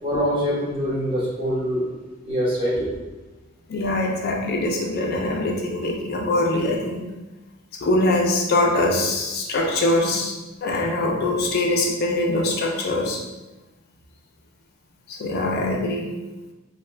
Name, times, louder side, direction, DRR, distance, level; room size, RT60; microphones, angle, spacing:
voice 1, 0.0-1.9 2.2-2.9, equal, 25° right, -8 dB, 1.0 m, -24 dB
voice 2, 3.7-7.1 7.8-13.2 15.1-16.1, left 2 dB, 50° left, 0 dB, 0.4 m, -23 dB
2.7 x 2.3 x 3.2 m, 1.1 s
head